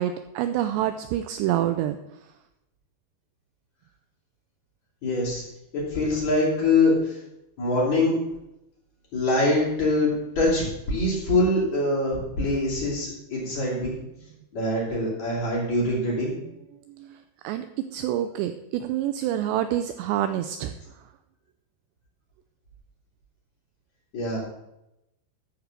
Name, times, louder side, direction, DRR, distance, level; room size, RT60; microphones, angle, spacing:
voice 1, 0.0-2.0 17.4-20.7, right 12 dB, 85° right, 10 dB, 2.5 m, -27 dB
voice 2, 5.0-5.4 5.7-7.2 7.6-8.1 9.1-13.9 14.5-16.3 24.1-24.4, left 2 dB, 40° left, -5 dB, 4.0 m, -24 dB
14.0 x 4.7 x 6.6 m, 0.88 s
omnidirectional pair, 5.4 m